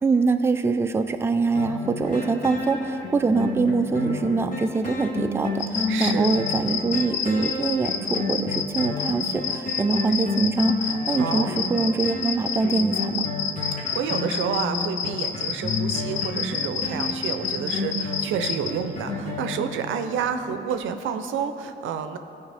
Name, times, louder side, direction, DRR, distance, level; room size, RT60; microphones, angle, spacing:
voice 1, 0.0-13.3, right 4 dB, 10° right, 7 dB, 0.4 m, -24 dB
sound 1, 1.5-20.2 20.7-20.8, left 3 dB, 40° left, 1.6 m, -30 dB
sound 2, 5.6-18.7, left 7 dB, 70° left, 0.6 m, -28 dB
voice 2, 5.9-6.3 11.1-11.5 13.9-22.2, right 7 dB, 80° right, 8 dB, 0.6 m, -29 dB
14.0 x 4.8 x 3.4 m, 2.7 s
cardioid pair, 90°, 20 cm